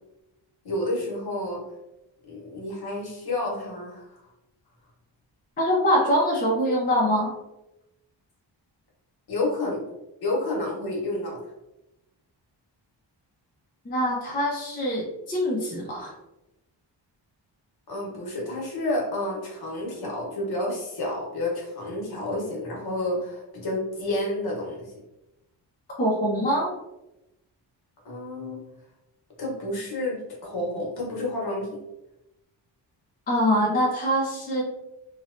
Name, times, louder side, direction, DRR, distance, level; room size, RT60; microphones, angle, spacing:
voice 1, 0.6-1.6 2.3-4.3 9.3-9.8 10.2-11.4 17.9-24.9 28.0-28.6 29.4-31.7, left 1 dB, 55° left, -3 dB, 1.0 m, -30 dB
voice 2, 5.6-7.3 13.9-16.1 26.0-26.7 33.3-34.6, equal, 20° left, -3 dB, 0.4 m, -24 dB
3.1 x 2.0 x 2.4 m, 0.92 s
wide cardioid pair, 160°, 44 cm